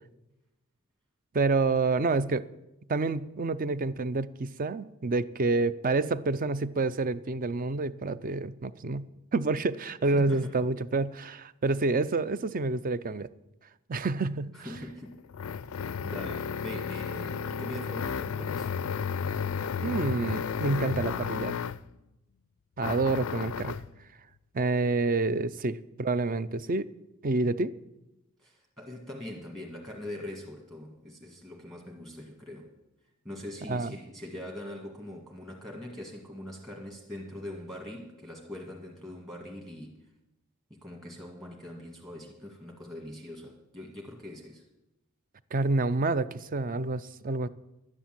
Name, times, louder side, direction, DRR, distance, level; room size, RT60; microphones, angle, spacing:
voice 1, 1.3-2.4 2.9-9.1 9.3-13.3 13.9-14.5 19.8-21.6 22.8-23.7 24.5-26.9 27.2-27.7 33.7-33.9 45.5-47.5, right 3 dB, 40° right, 16 dB, 0.5 m, -28 dB
voice 2, 10.0-10.6 14.5-15.2 15.7-18.8 28.4-32.7 33.2-40.0 40.7-44.6, left 1 dB, 20° right, 0 dB, 1.7 m, -42 dB
sound 1, 14.7-21.9 22.8-23.9, left 6 dB, 65° left, 0.4 m, -33 dB
11.5 x 9.9 x 7.5 m, 0.94 s
head